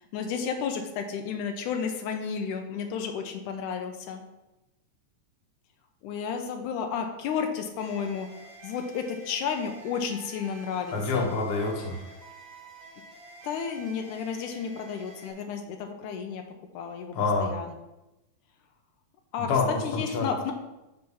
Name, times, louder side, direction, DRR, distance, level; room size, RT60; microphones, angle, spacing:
voice 1, 0.1-4.2 6.0-8.3 8.6-11.3 13.4-16.4 16.7-17.1 17.4-17.7 19.3-19.5 19.8-20.5, left 6 dB, 80° left, 4 dB, 2.2 m, -32 dB
sound 1, 7.8-15.3, right 2 dB, 50° right, 1.9 m, -49 dB
voice 2, 10.9-12.1 17.1-17.5 19.4-20.3, left 4 dB, 50° left, 0 dB, 1.6 m, -27 dB
6.5 x 6.0 x 5.5 m, 0.97 s
omnidirectional pair, 3.6 m